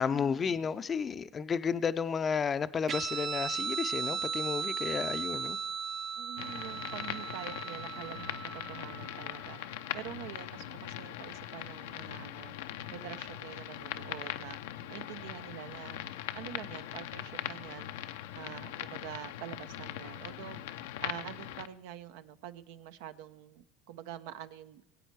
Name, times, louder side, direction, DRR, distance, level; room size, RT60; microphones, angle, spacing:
voice 1, 0.0-5.6, left 6 dB, 30° left, 12 dB, 0.5 m, -32 dB
Guitar, 2.9-9.8, right 6 dB, 40° right, 0.6 m, -37 dB
voice 2, 6.2-9.6 9.9-12.6 12.9-14.6 14.9-16.0 16.3-17.9 18.4-20.6 21.0-24.8, right 11 dB, 75° right, 11 dB, 0.7 m, -46 dB
sound 1, 6.4-21.7, left 12 dB, 80° left, 0.6 m, -41 dB
22.0 x 8.4 x 4.7 m, 0.86 s
supercardioid pair, 100°, 0 cm